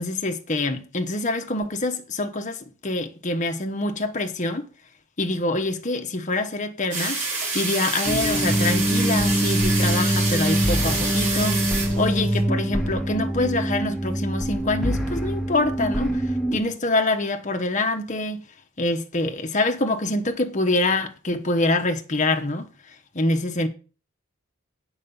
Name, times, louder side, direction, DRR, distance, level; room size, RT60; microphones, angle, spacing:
voice 1, 0.0-4.7 5.2-7.2 7.5-18.4 18.8-22.7 23.1-23.7, left 2 dB, 35° left, 1.0 m, -25 dB
sound 1, 6.9-12.4, right 3 dB, 35° right, 3.5 m, -27 dB
sound 2, 8.0-16.6, equal, ahead, 1.6 m, -24 dB
8.5 x 4.9 x 6.9 m
head